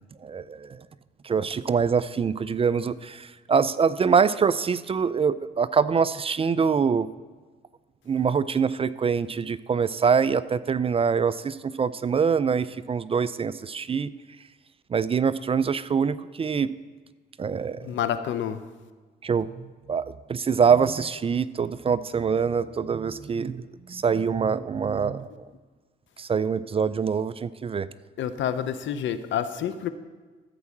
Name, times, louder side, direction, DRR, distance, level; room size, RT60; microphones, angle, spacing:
voice 1, 0.2-0.8 1.2-7.1 8.1-14.1 14.9-16.7 17.4-17.9 19.2-25.3 26.2-27.9, right 6 dB, 30° right, 16 dB, 0.3 m, -24 dB
voice 2, 17.8-18.6 28.2-29.9, left 9 dB, 70° left, 12 dB, 0.7 m, -28 dB
14.0 x 4.7 x 7.2 m, 1.4 s
cardioid pair, 90°, 20 cm